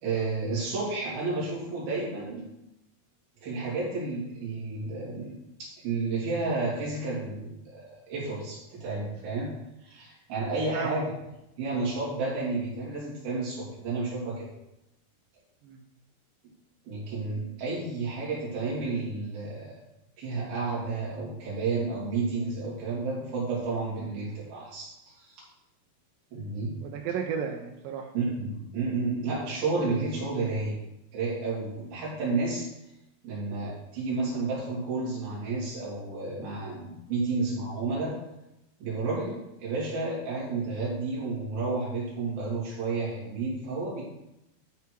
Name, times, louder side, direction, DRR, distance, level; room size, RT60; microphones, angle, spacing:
voice 1, 0.0-2.4 3.4-9.5 9.8-11.1 11.6-14.5 16.8-19.7 20.2-25.4 26.3-26.7 28.1-30.8 31.1-32.7 33.2-38.1 38.8-44.0, right 3 dB, 60° right, -7 dB, 5.1 m, -31 dB
voice 2, 10.7-11.1 15.6-15.8 26.8-28.1, right 6 dB, 80° right, 4 dB, 2.1 m, -33 dB
12.5 x 4.4 x 4.7 m, 0.89 s
omnidirectional pair, 4.7 m